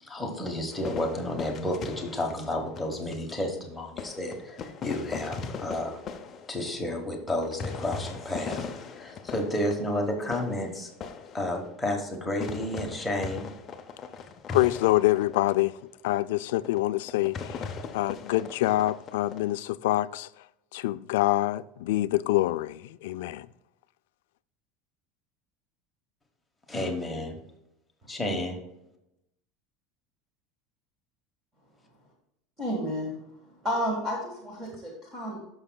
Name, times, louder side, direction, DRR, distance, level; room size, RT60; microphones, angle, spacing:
voice 1, 0.0-6.0 6.5-8.7 8.9-10.9 11.3-13.5 26.7-27.4 28.1-28.6, left 1 dB, 5° left, 1.1 m, -31 dB
sound 1, 0.7-3.5 4.0-12.2 12.4-15.7 16.1-16.2 16.5-16.8 17.1-19.4, left 5 dB, 20° left, 0.6 m, -39 dB
voice 2, 14.5-15.7 16.0-17.7 17.9-20.3 20.7-23.5, left 16 dB, 90° left, 0.3 m, -26 dB
voice 3, 32.6-33.2 33.6-35.4, equal, 15° right, 1.5 m, -31 dB
13.0 x 6.1 x 2.2 m
cardioid pair, 180°, 0 cm